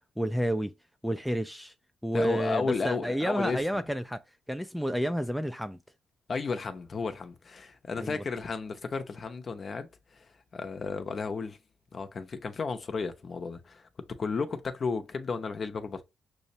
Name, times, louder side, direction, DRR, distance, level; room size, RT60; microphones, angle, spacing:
voice 1, 0.2-0.7 1.0-1.7 2.0-4.2 4.5-5.8 8.0-8.2, equal, ahead, 0.3 m, -30 dB
voice 2, 2.1-3.8 6.3-11.6 11.9-13.9 14.2-16.0, left 4 dB, 40° left, 0.6 m, -33 dB
6.1 x 2.1 x 2.7 m
cardioid pair, 90°, 0 cm